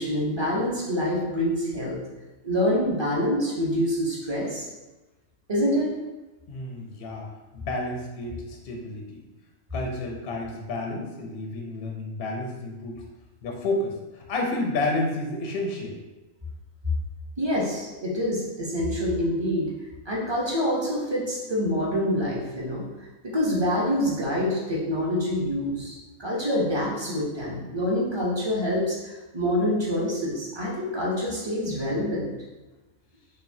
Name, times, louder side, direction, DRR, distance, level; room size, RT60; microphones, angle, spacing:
voice 1, 0.0-2.0 2.4-4.6 5.5-5.9 17.4-19.7 20.1-22.9 23.2-29.0 29.3-32.3, left 1 dB, 25° right, -5 dB, 0.6 m, -26 dB
voice 2, 6.5-7.3 7.5-9.2 9.7-13.0 13.4-16.0, left 2 dB, 60° left, 0 dB, 0.6 m, -30 dB
5.1 x 2.4 x 2.7 m, 1.1 s
omnidirectional pair, 1.5 m